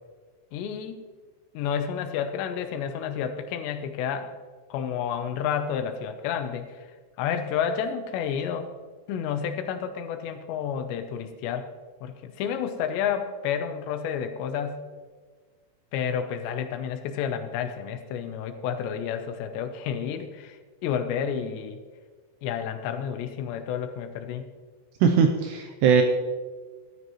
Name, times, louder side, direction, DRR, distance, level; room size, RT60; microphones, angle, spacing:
voice 1, 0.5-1.0 1.5-4.3 4.7-6.7 7.2-8.7 9.1-11.7 12.0-14.8 15.9-20.6 20.8-21.8 22.4-24.5, left 8 dB, 75° left, 7 dB, 2.7 m, -30 dB
voice 2, 25.0-26.0, right 6 dB, 85° right, 4 dB, 2.4 m, -20 dB
18.0 x 13.0 x 3.1 m, 1.4 s
omnidirectional pair, 5.7 m